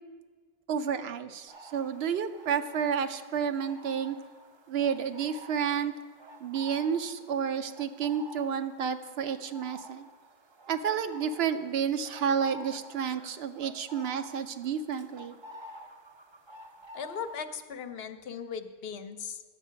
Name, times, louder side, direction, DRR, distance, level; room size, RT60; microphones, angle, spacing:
voice 1, 0.7-4.2 4.7-5.9 6.4-10.1 10.7-15.4, right 7 dB, 80° right, 10 dB, 0.8 m, -30 dB
sound 1, 1.5-17.4, right 1 dB, 35° right, 0.5 m, -50 dB
voice 2, 16.9-19.4, left 6 dB, 70° left, 9 dB, 0.8 m, -38 dB
9.7 x 7.5 x 5.6 m, 1.5 s
omnidirectional pair, 1.1 m